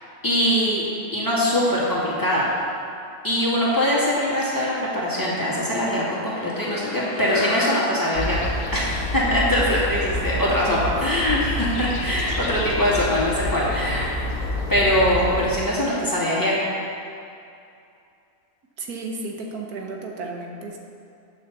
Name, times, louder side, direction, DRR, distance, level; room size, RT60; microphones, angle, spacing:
voice 1, 0.2-0.9 1.1-2.5 3.2-8.4 8.7-14.1 14.7-16.8, equal, 15° left, -8 dB, 2.4 m, -22 dB
sound 1, 6.1-10.8, left 4 dB, 65° left, 0.4 m, -35 dB
sound 2, 8.1-15.5, left 1 dB, 90° left, 1.6 m, -28 dB
voice 2, 18.8-20.8, right 3 dB, 90° right, 1 dB, 1.6 m, -33 dB
8.9 x 7.0 x 6.9 m, 2.6 s
omnidirectional pair, 1.5 m